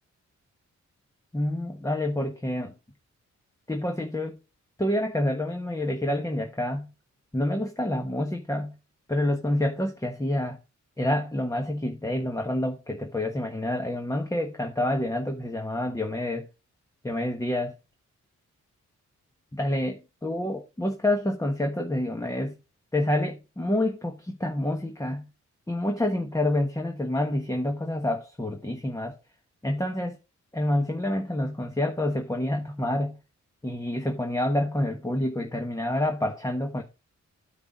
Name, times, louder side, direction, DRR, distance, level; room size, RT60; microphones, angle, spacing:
voice 1, 1.3-2.7 3.7-4.4 4.8-6.9 7.3-8.7 9.1-10.6 11.0-16.5 17.0-17.7 19.5-22.6 22.9-25.3 25.7-29.1 29.6-30.2 30.5-33.2 33.6-36.8, left 1 dB, 10° left, 1.2 m, -28 dB
9.6 x 4.1 x 6.1 m
wide cardioid pair, 130°, 30 cm